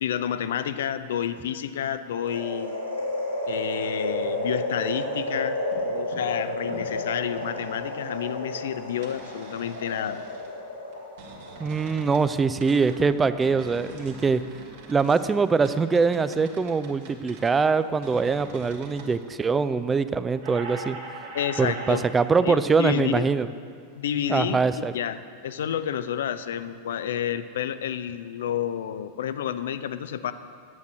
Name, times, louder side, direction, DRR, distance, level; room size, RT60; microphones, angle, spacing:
voice 1, 0.0-2.8 3.5-5.6 5.8-10.2 21.3-22.0 22.4-23.3 23.9-24.6 24.9-30.3, left 9 dB, 60° left, 12 dB, 0.4 m, -30 dB
sound 1, 2.2-12.5 12.9-13.0, left 1 dB, 80° left, 2.2 m, -31 dB
sound 2, 4.4-5.3 5.6-5.9 6.1-7.0 7.4-7.8 9.0-10.5 10.9-12.3 12.6-19.1 20.3-22.0, right 3 dB, 55° right, 1.6 m, -43 dB
voice 2, 11.6-14.4 14.9-21.0 21.6-23.5 24.3-24.9, right 4 dB, 15° right, 13 dB, 0.4 m, -23 dB
9.2 x 8.1 x 6.3 m, 2.1 s
figure-of-eight pair, 90°, 0 cm